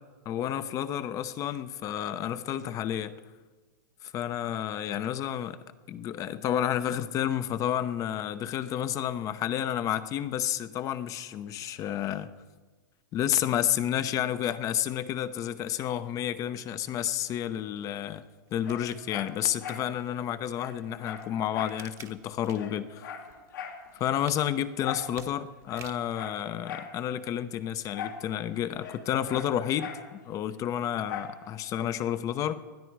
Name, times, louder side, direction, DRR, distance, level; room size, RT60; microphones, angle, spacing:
voice 1, 0.3-3.2 4.0-5.6 5.9-12.3 13.1-18.2 18.5-23.1 23.9-32.6, left 10 dB, 35° left, 13 dB, 0.8 m, -30 dB
sound 1, 18.5-20.3 20.8-22.8 23.2-26.2 26.8-26.9, right 10 dB, 30° right, 1.1 m, -51 dB
Dog, 18.6-19.9 20.2-20.3 20.5-21.8 22.2-22.3 22.5-23.8 24.8-25.1 25.6-27.0 27.9-28.3 28.5-30.1 31.1-31.4 31.9-32.0, left 7 dB, 80° left, 2.5 m, -40 dB
20.0 x 12.5 x 4.7 m, 1.3 s
hypercardioid pair, 125°, 10 cm